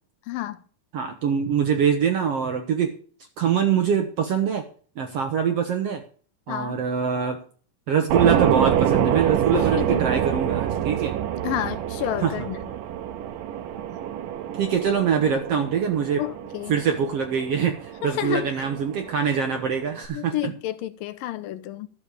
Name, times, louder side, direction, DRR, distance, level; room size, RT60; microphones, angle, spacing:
voice 1, 0.3-0.6 6.5-6.8 9.5-10.1 11.4-12.6 16.2-16.8 18.0-18.6 20.1-21.9, left 13 dB, 85° left, 2.4 m, -30 dB
voice 2, 0.9-2.9 3.4-4.7 5.0-6.0 6.5-7.4 7.9-11.1 12.2-12.4 14.6-16.2 16.7-20.5, right 7 dB, 65° right, 1.6 m, -24 dB
sound 1, 8.1-20.1, right 10 dB, 85° right, 2.6 m, -26 dB
12.0 x 7.1 x 6.6 m
omnidirectional pair, 4.0 m